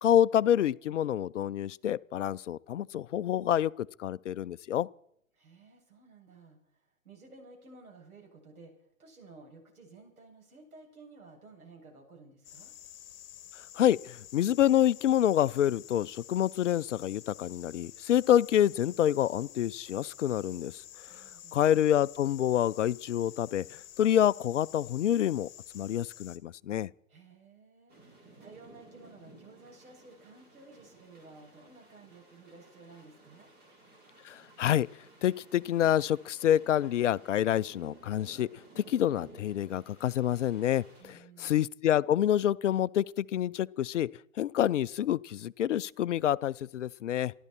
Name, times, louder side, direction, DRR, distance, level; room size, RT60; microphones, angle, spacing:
voice 1, 0.0-4.9 13.6-20.8 21.2-21.3 21.5-25.5 25.7-26.9 34.2-34.9 35.2-38.5 38.8-40.8 41.4-44.1 44.4-47.3, left 11 dB, 55° left, 0.5 m, -27 dB
voice 2, 5.3-12.7 21.1-21.6 27.1-33.5 41.0-41.5, right 3 dB, 75° right, 7.0 m, -54 dB
sound 1, 12.4-26.4, left 12 dB, 40° left, 1.6 m, -50 dB
sound 2, 27.9-41.0, right 2 dB, 20° right, 3.6 m, -56 dB
28.0 x 12.0 x 4.3 m
hypercardioid pair, 130°, 43 cm